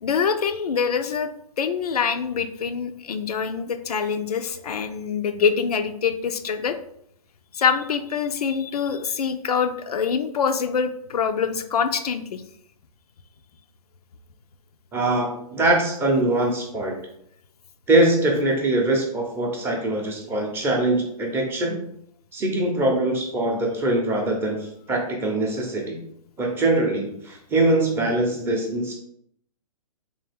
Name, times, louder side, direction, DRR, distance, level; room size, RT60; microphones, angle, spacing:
voice 1, 0.0-1.3 1.6-6.8 7.5-12.4, left 6 dB, 90° left, 9 dB, 0.4 m, -25 dB
voice 2, 14.9-17.0 17.9-21.8 22.3-26.0 26.4-29.0, right 2 dB, 10° right, 0 dB, 0.6 m, -23 dB
3.4 x 2.4 x 3.4 m, 0.72 s
hypercardioid pair, 140°, 19 cm